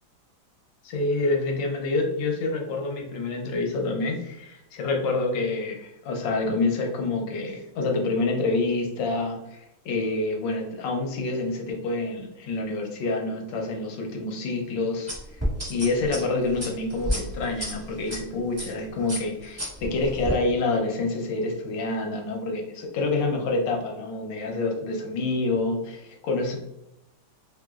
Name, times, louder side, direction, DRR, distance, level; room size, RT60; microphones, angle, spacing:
voice 1, 0.8-15.4 15.7-26.6, left 3 dB, 70° left, 1 dB, 1.3 m, -27 dB
sound 1, 15.1-18.2 18.6-18.8 19.1-20.4, equal, 15° right, 0.6 m, -31 dB
3.2 x 2.9 x 2.3 m, 0.86 s
omnidirectional pair, 2.2 m